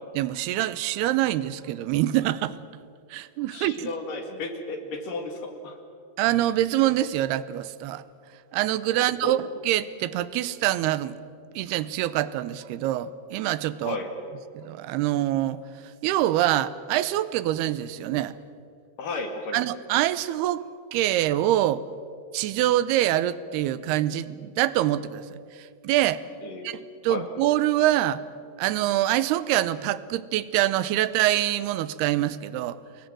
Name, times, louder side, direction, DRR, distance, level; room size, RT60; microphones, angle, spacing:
voice 1, 0.2-2.6 3.1-3.9 6.2-8.0 8.5-11.1 11.6-14.0 14.5-15.6 16.0-18.4 19.5-20.6 20.9-21.8 22.3-26.2 26.6-28.2 28.6-32.8, right 14 dB, 75° right, 16 dB, 2.7 m, -25 dB
voice 2, 3.5-5.8 8.9-9.3 13.8-14.1 19.0-19.6 26.4-26.8 27.1-27.3, left 3 dB, 55° left, 5 dB, 3.4 m, -34 dB
29.0 x 21.5 x 7.6 m, 2.3 s
omnidirectional pair, 5.0 m